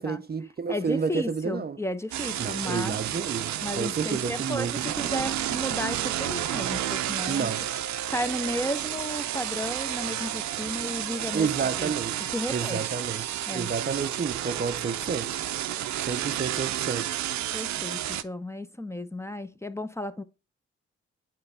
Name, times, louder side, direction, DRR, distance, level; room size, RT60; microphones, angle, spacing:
voice 1, 0.0-1.8 2.4-5.1 7.3-7.7 11.3-12.2 12.5-15.3 16.1-17.2, right 5 dB, 35° right, 0.6 m, -30 dB
voice 2, 0.7-3.0 3.6-7.5 8.1-11.5 11.8-11.9 12.2-12.8 13.5-13.7 15.7-16.1 17.5-20.2, equal, 10° left, 0.7 m, -34 dB
sound 1, 2.1-18.2, right 12 dB, 70° right, 0.6 m, -31 dB
8.6 x 4.5 x 3.3 m
supercardioid pair, 45°, 29 cm